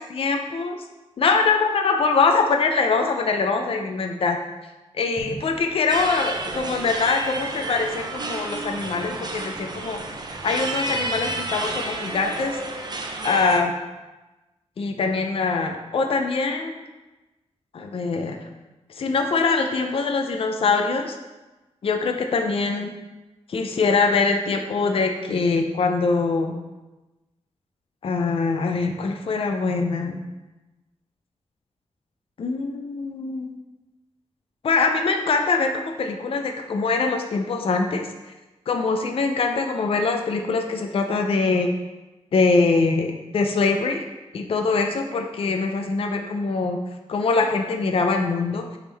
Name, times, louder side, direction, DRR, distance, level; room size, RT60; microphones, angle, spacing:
voice 1, 0.0-0.7 1.2-4.4 5.0-10.0 10.3-12.6 13.2-13.7 14.8-16.8 17.7-18.4 19.0-21.2 21.8-22.9 23.5-26.6 28.0-30.2 32.4-33.5 34.6-38.1 38.7-41.7 42.3-44.0 44.3-46.8 47.1-48.6, left 4 dB, 55° left, 4 dB, 0.5 m, -23 dB
sound 1, 5.2-9.8 10.1-11.4, right 2 dB, 5° right, 1.7 m, -45 dB
sound 2, 5.9-13.6, right 2 dB, 40° right, 0.6 m, -31 dB
8.0 x 3.6 x 3.3 m, 1.1 s
wide cardioid pair, 135°, 11 cm